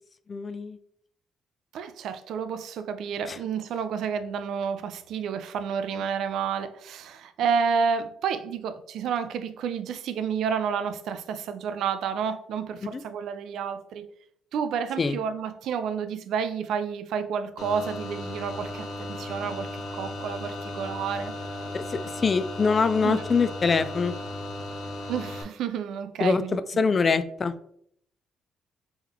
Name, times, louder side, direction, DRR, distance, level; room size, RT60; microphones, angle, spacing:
voice 1, 0.3-0.8 3.3-3.4 5.9-6.0 12.9-13.0 15.0-15.2 21.7-24.1 26.2-27.5, left 4 dB, 35° left, 0.3 m, -24 dB
voice 2, 1.7-14.1 14.5-19.7 19.9-21.3 23.0-23.2 25.1-26.6, right 6 dB, 80° right, 0.4 m, -30 dB
sound 1, 17.6-25.4, left 1 dB, 75° left, 0.9 m, -36 dB
3.6 x 3.0 x 3.4 m
cardioid pair, 90°, 0 cm